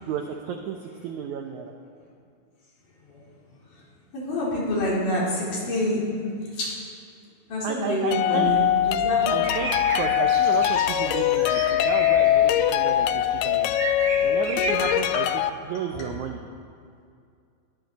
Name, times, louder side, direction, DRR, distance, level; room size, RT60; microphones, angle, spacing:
voice 1, 0.1-1.7 7.6-8.5 9.3-13.7 14.2-16.4, right 7 dB, 90° right, 3 dB, 1.6 m, -32 dB
voice 2, 4.1-6.1 6.5-6.7 7.5-9.7 13.3-13.4 13.7-14.6 15.7-16.1, left 1 dB, 55° left, -6 dB, 5.1 m, -28 dB
sound 1, 8.1-15.5, left 11 dB, 85° left, 1.9 m, -22 dB
sound 2, 8.4-15.1, right 3 dB, 55° right, 1.5 m, -34 dB
20.5 x 14.0 x 4.1 m, 2.3 s
omnidirectional pair, 4.5 m